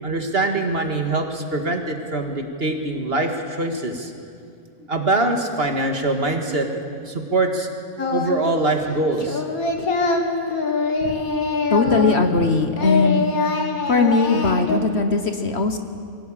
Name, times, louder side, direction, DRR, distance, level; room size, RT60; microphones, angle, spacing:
voice 1, 0.0-4.1 4.9-7.7 8.1-9.4, right 2 dB, 40° right, 4 dB, 2.0 m, -23 dB
Singing, 8.0-8.6 8.8-12.5 12.7-14.8, left 3 dB, 75° left, 2.3 m, -23 dB
voice 2, 11.7-13.3 13.9-15.8, left 3 dB, 50° left, 7 dB, 1.3 m, -19 dB
23.5 x 17.0 x 8.9 m, 2.3 s
omnidirectional pair, 1.6 m